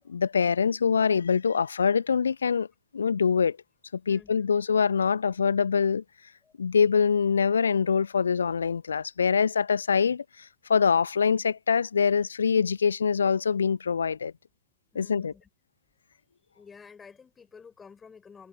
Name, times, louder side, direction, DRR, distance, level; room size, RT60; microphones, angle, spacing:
voice 1, 0.1-2.7 2.9-3.6 4.1-6.0 6.6-14.3 15.0-15.3, left 6 dB, 70° left, 0.6 m, -24 dB
voice 2, 4.1-4.4 6.4-6.5 14.9-15.5 16.5-18.5, left 5 dB, 15° left, 5.9 m, -51 dB
figure-of-eight pair, 90°, 0 cm